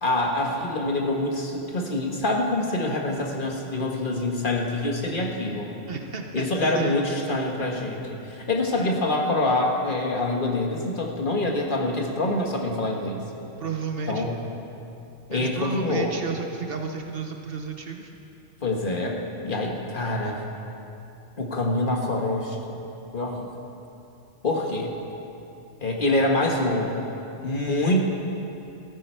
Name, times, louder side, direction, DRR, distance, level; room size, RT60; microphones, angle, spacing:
voice 1, 0.0-5.7 6.3-13.2 14.1-14.4 15.3-16.1 18.6-20.4 21.4-22.8 23.1-23.5 24.4-24.9 25.8-27.1 27.4-28.0, left 2 dB, 45° left, 1 dB, 1.5 m, -25 dB
voice 2, 5.9-6.4 6.7-7.0 8.8-9.0 13.6-14.3 15.3-18.1, right 4 dB, 55° right, 4 dB, 1.0 m, -32 dB
14.5 x 14.0 x 4.5 m, 2.8 s
omnidirectional pair, 1.2 m